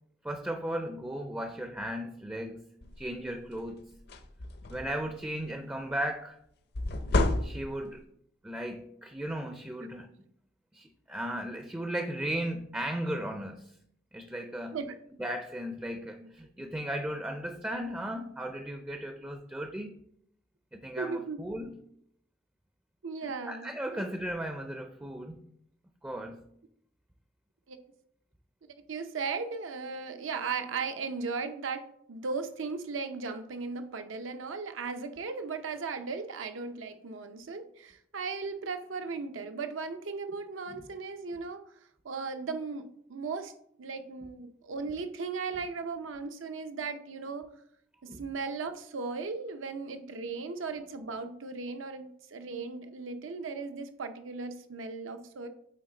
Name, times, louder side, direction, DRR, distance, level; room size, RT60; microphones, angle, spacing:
voice 1, 0.2-2.7 3.0-3.9 4.7-6.4 7.4-8.0 8.4-10.2 10.7-13.7 14.1-14.8 15.2-20.0 20.7-21.8 23.2-25.4 26.0-26.4 40.8-40.9 48.1-48.2, right 1 dB, 10° right, 5 dB, 0.4 m, -36 dB
sound 1, 2.8-3.1 3.5-3.7 4.0-5.1 6.7-8.0, left 2 dB, 55° left, 0.6 m, -30 dB
voice 2, 21.0-21.4 23.0-24.0 27.7-27.8 28.9-41.6 42.0-43.5 43.8-47.5 48.0-55.5, right 4 dB, 85° right, 8 dB, 0.6 m, -37 dB
8.5 x 3.8 x 3.9 m, 0.71 s
head